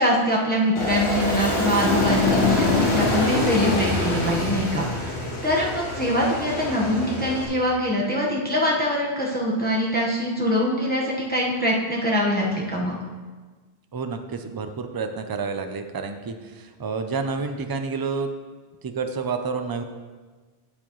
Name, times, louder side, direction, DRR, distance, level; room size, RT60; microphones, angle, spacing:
voice 1, 0.0-5.1 5.4-12.9, left 1 dB, 10° left, -3 dB, 1.1 m, -23 dB
Aircraft, 0.8-7.5, left 1 dB, 85° left, 1.7 m, -25 dB
voice 2, 13.9-18.3 18.8-19.8, right 4 dB, 35° right, 7 dB, 0.3 m, -29 dB
8.8 x 8.5 x 3.1 m, 1.4 s
omnidirectional pair, 1.1 m